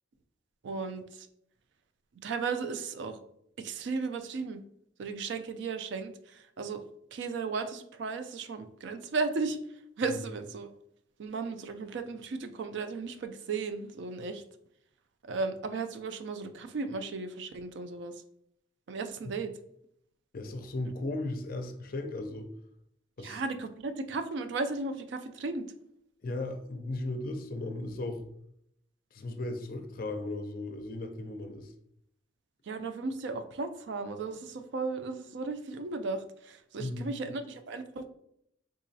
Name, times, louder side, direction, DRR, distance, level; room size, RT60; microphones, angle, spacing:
voice 1, 0.6-1.3 2.2-3.2 3.6-4.6 5.0-6.8 7.1-10.7 11.2-14.4 15.3-18.1 18.9-19.5 23.2-25.6 32.7-38.1, right 4 dB, 60° right, 9 dB, 0.3 m, -35 dB
voice 2, 20.3-22.5 23.2-23.4 26.2-28.2 29.1-31.7 36.8-37.1, left 2 dB, 50° left, 6 dB, 0.4 m, -36 dB
3.7 x 2.9 x 2.7 m, 0.73 s
head